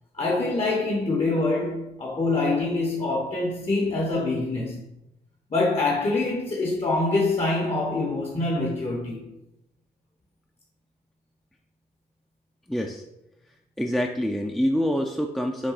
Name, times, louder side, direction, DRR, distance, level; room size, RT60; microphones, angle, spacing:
voice 1, 0.2-4.8 5.5-9.2, left 2 dB, 35° left, 0.8 m, -25 dB
voice 2, 12.7-13.0 13.8-15.7, equal, ahead, 0.4 m, -26 dB
6.0 x 2.3 x 3.9 m
cardioid pair, 60°, 17 cm